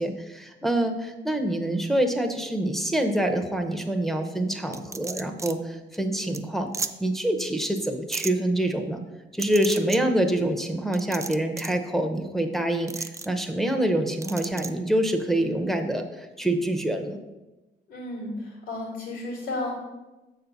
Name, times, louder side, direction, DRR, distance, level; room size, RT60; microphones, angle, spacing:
voice 1, 0.0-6.7 7.0-9.0 9.3-17.2, right 1 dB, ahead, 3 dB, 0.8 m, -26 dB
sound 1, 4.7-5.5 5.9-6.0 6.3-6.4 6.7-6.9 8.1-8.3 9.4-10.0 10.9-11.8 12.9-13.3 14.2-14.7, right 4 dB, 15° right, 0.3 m, -33 dB
voice 2, 17.9-19.7, left 2 dB, 75° left, -6 dB, 2.3 m, -33 dB
6.5 x 4.0 x 5.9 m, 1.1 s
cardioid pair, 90°, 20 cm